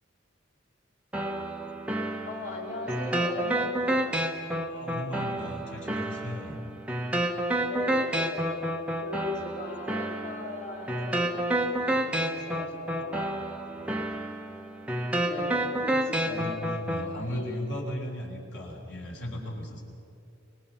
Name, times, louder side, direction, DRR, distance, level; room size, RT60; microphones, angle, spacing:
sound 1, 1.1-17.1, right 1 dB, 5° right, 1.0 m, -30 dB
voice 1, 2.2-4.3 7.6-8.5 9.0-13.5 15.2-16.6 17.0-17.6, left 2 dB, 40° left, -4 dB, 3.1 m, -39 dB
voice 2, 4.6-6.6 13.7-14.1 16.1-19.8, equal, 70° left, 0 dB, 3.6 m, -37 dB
24.5 x 20.5 x 5.7 m, 2.7 s
head